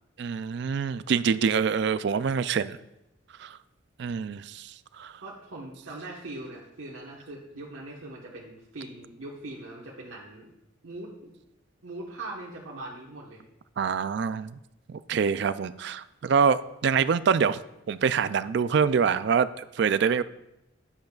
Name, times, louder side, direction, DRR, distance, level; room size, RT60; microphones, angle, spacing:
voice 1, 0.2-2.8 3.4-3.6 4.0-4.7 5.0-5.1 13.8-14.6 14.9-17.6 17.9-20.2, right 6 dB, 55° right, 15 dB, 0.3 m, -25 dB
voice 2, 5.2-10.5 10.8-11.3 11.8-13.4, right 2 dB, 85° right, -4 dB, 1.3 m, -41 dB
10.5 x 10.5 x 2.4 m, 0.88 s
head